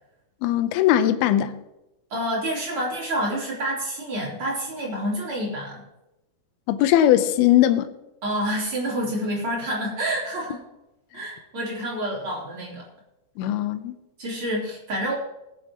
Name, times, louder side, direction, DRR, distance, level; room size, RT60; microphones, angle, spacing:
voice 1, 0.4-1.6 6.7-7.9 13.4-13.9, left 12 dB, 75° left, 2.5 m, -19 dB
voice 2, 2.1-5.8 8.2-10.6 11.1-12.8 14.2-15.1, right 1 dB, 30° right, 4.0 m, -28 dB
20.5 x 10.5 x 3.0 m
omnidirectional pair, 4.8 m